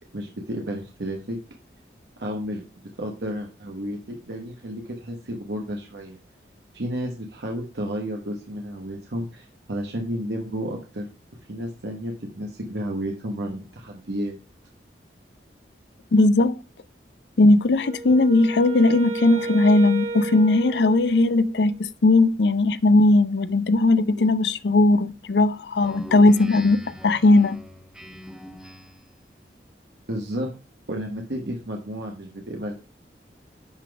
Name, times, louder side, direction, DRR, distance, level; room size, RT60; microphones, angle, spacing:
voice 1, 0.1-1.4 2.2-2.6 3.0-6.2 6.7-11.1 11.5-14.4 30.1-30.5 30.9-32.7, equal, 80° right, 1.2 m, -32 dB
voice 2, 16.1-16.6 17.4-27.6, left 2 dB, 80° left, 0.5 m, -18 dB
Wind instrument woodwind instrument, 17.8-21.7, right 3 dB, 40° right, 1.5 m, -33 dB
Speech synthesizer, 25.8-29.1, equal, 5° right, 1.0 m, -42 dB
10.0 x 4.0 x 4.7 m
head